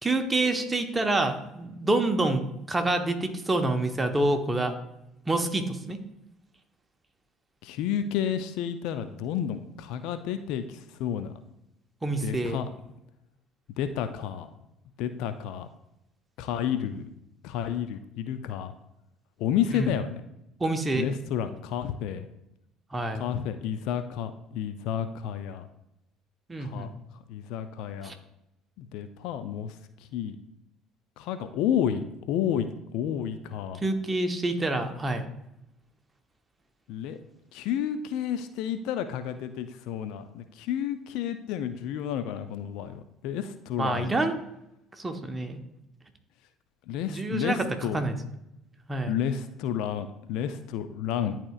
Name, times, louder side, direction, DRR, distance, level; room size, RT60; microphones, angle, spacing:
voice 1, 0.0-4.7 5.3-6.0 12.0-12.6 19.7-19.9 20.6-21.1 22.9-23.3 26.5-26.9 28.0-28.1 33.8-35.3 43.8-44.4 45.0-45.6 47.1-47.7 47.9-48.2 48.9-49.2, right 2 dB, 20° right, 5 dB, 1.0 m, -27 dB
voice 2, 7.6-11.3 12.2-12.7 13.8-14.5 15.0-15.7 16.4-17.1 17.4-18.7 19.4-20.2 20.9-22.3 23.1-25.7 26.6-26.9 27.3-28.1 28.8-29.7 30.1-30.4 31.2-33.8 36.9-37.2 37.5-44.1 46.9-48.0 49.1-51.4, left 9 dB, 65° left, 10 dB, 0.4 m, -31 dB
10.5 x 4.4 x 2.4 m, 0.85 s
figure-of-eight pair, 55°, 0 cm